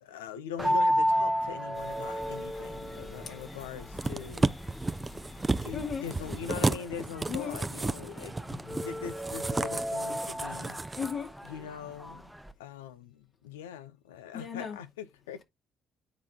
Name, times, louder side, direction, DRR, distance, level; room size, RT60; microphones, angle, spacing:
voice 1, 0.0-4.5 5.6-10.8 11.4-12.3 12.6-15.4, left 8 dB, 80° left, 0.7 m, -42 dB
sound 1, 0.6-12.5, equal, 5° right, 0.9 m, -34 dB
sound 2, 1.7-6.7, left 2 dB, 30° left, 2.9 m, -49 dB
sound 3, 3.9-11.1 11.5-11.6, right 3 dB, 20° right, 0.6 m, -32 dB
voice 2, 5.7-6.0 7.3-7.6 11.0-11.3 14.3-14.8, left 6 dB, 50° left, 2.5 m, -35 dB
9.8 x 4.1 x 3.7 m
hypercardioid pair, 50°, 0 cm